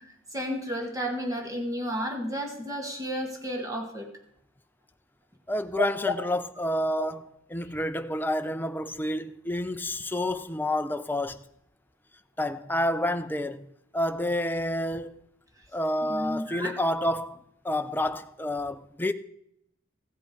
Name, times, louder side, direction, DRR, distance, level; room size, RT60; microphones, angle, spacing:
voice 1, 0.0-4.1 5.8-5.9 7.0-7.1 16.1-16.7, equal, 15° right, 1.8 m, -32 dB
voice 2, 5.5-7.2 7.5-11.4 12.4-13.7 13.9-15.1 15.7-17.4 17.6-19.1, left 1 dB, 10° left, 0.5 m, -29 dB
15.0 x 7.7 x 5.1 m
head